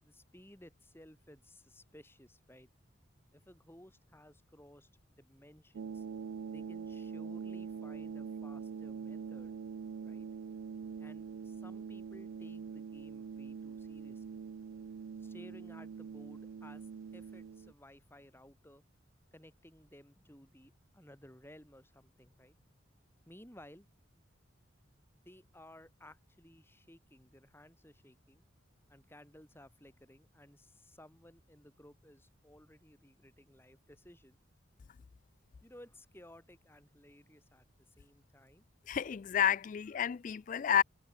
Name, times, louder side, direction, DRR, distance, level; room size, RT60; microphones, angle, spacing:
voice 1, 0.0-2.7 3.3-6.0 6.5-9.6 10.0-10.3 11.0-14.4 15.2-18.8 19.3-22.6 23.3-23.9 25.2-28.4 28.9-34.4 35.6-37.7 38.0-38.6, left 1 dB, 10° left, 6.8 m, -57 dB
sound 1, 5.7-17.7, right 6 dB, 90° right, 0.4 m, -44 dB
voice 2, 38.9-40.8, left 9 dB, 40° left, 0.3 m, -30 dB
head